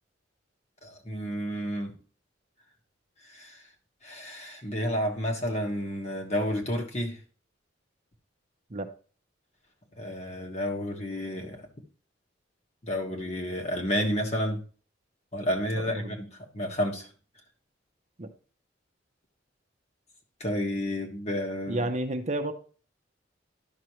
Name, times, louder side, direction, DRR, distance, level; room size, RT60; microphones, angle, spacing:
voice 1, 0.8-1.9 3.3-3.6 4.0-7.2 10.0-11.6 12.8-14.6 15.3-16.3 16.5-17.1 20.4-21.9, equal, 35° left, 2 dB, 1.5 m, -30 dB
voice 2, 15.8-16.2 18.2-18.3 21.7-22.5, right 1 dB, 35° right, 6 dB, 0.7 m, -31 dB
11.5 x 6.1 x 3.1 m, 0.40 s
head